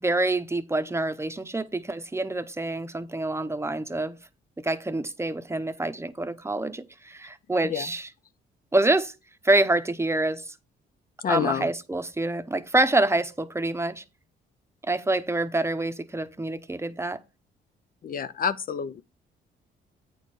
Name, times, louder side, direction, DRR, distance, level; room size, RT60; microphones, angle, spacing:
voice 1, 0.0-4.2 4.6-8.1 8.7-9.1 9.4-10.5 11.3-14.0 14.8-17.2, right 2 dB, 15° right, 0.8 m, -26 dB
voice 2, 11.2-11.7 18.0-19.0, left 7 dB, 45° left, 0.5 m, -28 dB
8.9 x 4.3 x 4.8 m
cardioid pair, 90°, 20 cm